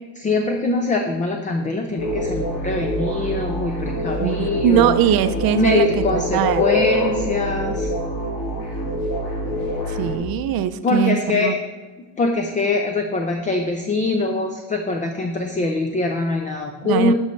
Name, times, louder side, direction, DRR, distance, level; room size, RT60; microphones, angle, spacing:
voice 1, 0.1-5.0 5.5-7.9 10.8-11.6 12.2-17.1, left 3 dB, 20° left, 4 dB, 0.4 m, -23 dB
sound 1, 2.0-10.2, equal, 65° left, 2.1 m, -25 dB
voice 2, 4.2-6.8 9.9-11.6 16.8-17.1, right 10 dB, 55° right, 12 dB, 0.5 m, -21 dB
11.0 x 5.4 x 3.1 m, 1.3 s
cardioid pair, 150°, 43 cm